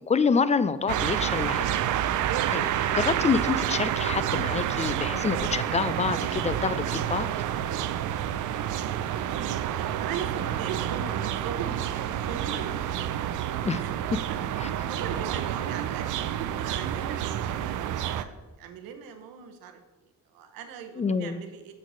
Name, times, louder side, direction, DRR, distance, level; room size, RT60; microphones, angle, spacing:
voice 1, 0.1-1.7 2.5-7.3 13.7-13.8 14.6-14.7 21.0-21.4, left 5 dB, 20° left, 14 dB, 0.3 m, -27 dB
sound 1, 0.9-18.2, right 11 dB, 60° right, 0.5 m, -29 dB
voice 2, 8.9-13.0 13.8-13.9 14.3-18.3 18.6-19.8 20.3-21.7, right 7 dB, 85° right, 7 dB, 0.9 m, -39 dB
6.4 x 4.0 x 6.1 m, 1.2 s
cardioid pair, 80°, 34 cm